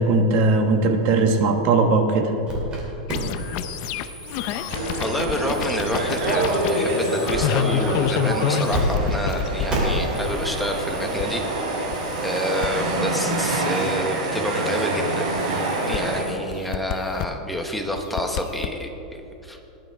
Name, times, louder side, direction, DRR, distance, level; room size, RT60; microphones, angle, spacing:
voice 1, 0.0-2.3, right 3 dB, 40° right, 5 dB, 1.2 m, -19 dB
sound 1, 2.5-2.8 3.1-8.8 9.1-9.2 9.7-16.3, right 1 dB, 20° right, 2.8 m, -34 dB
sound 2, 3.1-11.2 11.9-12.7 15.3-16.0 16.5-17.3 18.0-18.7, left 9 dB, 40° left, 0.5 m, -28 dB
sound 3, 4.7-16.2, right 2 dB, 65° right, 3.6 m, -26 dB
voice 2, 5.0-11.4 11.7-15.4 15.9-19.6, equal, ahead, 2 dB, 1.0 m, -28 dB
19.5 x 11.0 x 3.5 m, 3.0 s
supercardioid pair, 160°, 4 cm